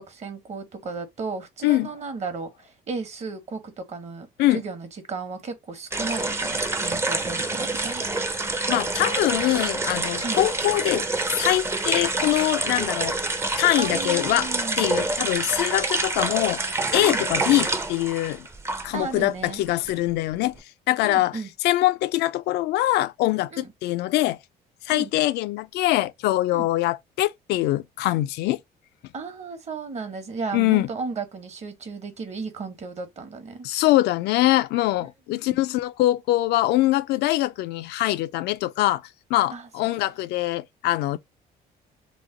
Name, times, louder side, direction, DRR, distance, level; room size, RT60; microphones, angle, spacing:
voice 1, 0.0-8.0 10.2-10.4 13.8-14.8 17.0-17.2 18.9-19.6 21.0-21.5 23.5-23.6 24.9-25.1 26.5-26.7 29.1-33.7 35.0-35.6 39.5-39.7, right 4 dB, 40° right, 1.0 m, -34 dB
sound 1, 5.9-19.1 19.4-20.6, right 2 dB, 15° right, 0.5 m, -27 dB
voice 2, 8.7-11.0 11.4-13.2 13.6-14.5 14.8-16.6 16.9-18.5 18.8-20.6 20.9-24.4 24.8-28.6 30.5-30.9 33.6-39.0 39.3-41.2, left 16 dB, 80° left, 0.4 m, -23 dB
3.0 x 2.1 x 3.7 m
cardioid pair, 110°, 17 cm